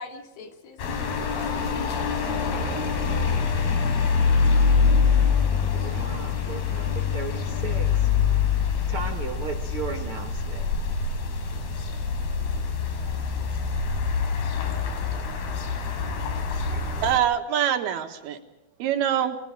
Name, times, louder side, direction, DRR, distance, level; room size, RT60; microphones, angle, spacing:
voice 1, 0.0-1.6 1.9-2.9, left 4 dB, 70° left, 3 dB, 4.1 m, -43 dB
sound 1, 0.8-17.2, left 5 dB, 90° left, 4.9 m, -25 dB
voice 2, 5.8-8.1 8.9-10.7, right 5 dB, 65° right, 5 dB, 1.3 m, -36 dB
voice 3, 16.7-18.4 18.8-19.4, right 9 dB, 85° right, 5 dB, 3.6 m, -25 dB
30.0 x 24.0 x 5.0 m, 0.89 s
omnidirectional pair, 4.4 m